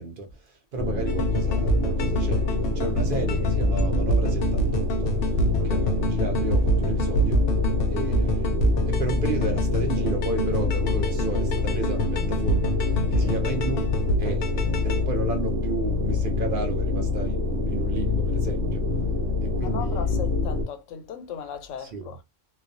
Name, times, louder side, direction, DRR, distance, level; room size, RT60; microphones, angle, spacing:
voice 1, 0.0-2.5 2.7-5.2 5.6-7.5 7.9-13.9 14.2-14.5 14.8-18.9 19.4-20.2 21.8-22.2, right 2 dB, 55° right, 0.7 m, -33 dB
sound 1, 0.8-20.6, left 4 dB, 80° right, 0.9 m, -26 dB
sound 2, 1.1-15.0, right 2 dB, 60° left, 0.7 m, -27 dB
voice 2, 19.5-22.2, left 8 dB, 85° left, 1.0 m, -37 dB
2.3 x 2.1 x 2.5 m
omnidirectional pair, 1.3 m